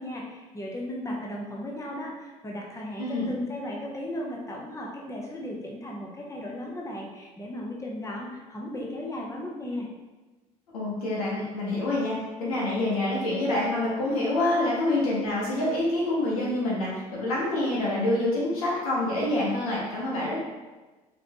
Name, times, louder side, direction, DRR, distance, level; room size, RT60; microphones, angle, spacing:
voice 1, 0.0-9.9, left 1 dB, 15° left, -2 dB, 1.0 m, -36 dB
voice 2, 3.0-3.3 10.7-16.9 17.2-20.4, left 1 dB, 85° left, -6 dB, 1.4 m, -26 dB
5.0 x 3.4 x 3.0 m, 1.2 s
hypercardioid pair, 60°, 18 cm